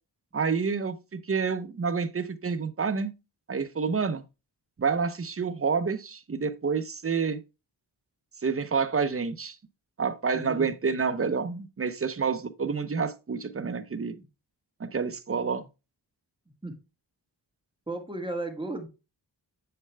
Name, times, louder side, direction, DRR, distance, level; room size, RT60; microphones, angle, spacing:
voice 1, 0.3-3.1 3.5-4.2 4.8-7.4 8.4-9.6 10.0-14.1 14.8-15.6, right 5 dB, 30° right, 0.7 m, -28 dB
voice 2, 10.3-10.7 14.1-14.2 16.6-16.7 17.9-18.9, right 2 dB, 10° right, 1.5 m, -34 dB
7.6 x 6.7 x 2.2 m
wide cardioid pair, 80°, 43 cm